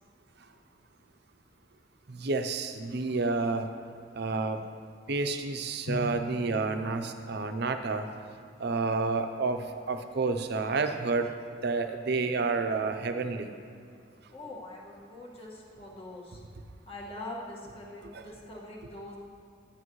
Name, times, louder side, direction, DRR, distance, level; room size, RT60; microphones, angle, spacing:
voice 1, 2.1-3.7 4.1-4.6 5.1-8.1 8.6-11.3 11.6-13.5 18.1-18.2, right 3 dB, 60° right, 7 dB, 0.6 m, -30 dB
Drum, 5.9-8.0, left 1 dB, 50° left, 1.0 m, -40 dB
voice 2, 14.3-16.4 16.9-19.2, left 1 dB, 30° left, -4 dB, 1.7 m, -43 dB
11.0 x 10.0 x 3.1 m, 2.5 s
head